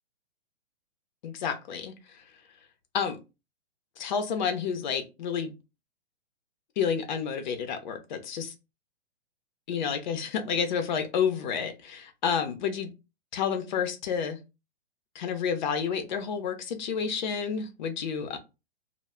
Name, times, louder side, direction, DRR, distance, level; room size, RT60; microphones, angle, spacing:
voice 1, 1.2-2.2 2.9-3.2 4.0-5.5 6.8-8.5 9.7-12.9 13.3-14.4 15.1-18.4, left 7 dB, 45° left, 7 dB, 0.6 m, -30 dB
2.1 x 2.0 x 3.5 m, 0.27 s
hypercardioid pair, 150°, 31 cm